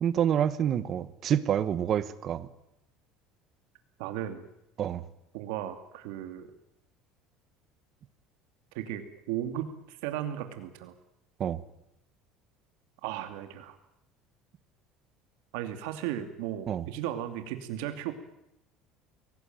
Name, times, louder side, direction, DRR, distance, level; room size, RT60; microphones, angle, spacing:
voice 1, 0.0-2.5 4.8-5.0 11.4-11.6 16.7-16.8, right 9 dB, 30° right, 1.1 m, -27 dB
voice 2, 4.0-4.5 5.3-6.5 8.7-10.9 13.0-13.8 15.5-18.1, right 11 dB, 80° right, 2.6 m, -35 dB
24.0 x 18.5 x 9.1 m
cardioid pair, 180°, 0 cm